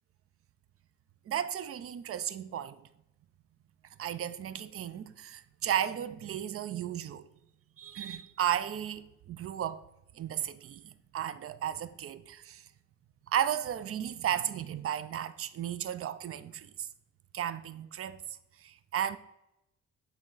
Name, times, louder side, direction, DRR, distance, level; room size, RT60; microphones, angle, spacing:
voice 1, 1.3-2.8 4.0-7.2 7.8-9.8 10.1-12.7 13.3-16.9 17.3-18.2 18.6-19.2, right 10 dB, 50° right, 0.5 m, -34 dB
8.6 x 3.5 x 3.9 m
cardioid pair, 90°, 30 cm